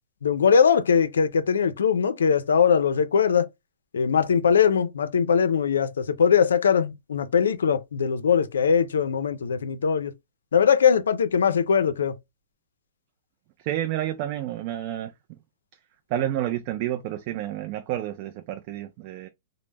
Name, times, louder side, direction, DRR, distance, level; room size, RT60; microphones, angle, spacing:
voice 1, 0.2-3.5 3.9-10.1 10.5-12.1, left 7 dB, 85° left, 0.4 m, -21 dB
voice 2, 13.6-15.4 16.1-19.3, right 12 dB, 45° right, 0.3 m, -30 dB
2.1 x 2.0 x 3.2 m
hypercardioid pair, 130°, 0 cm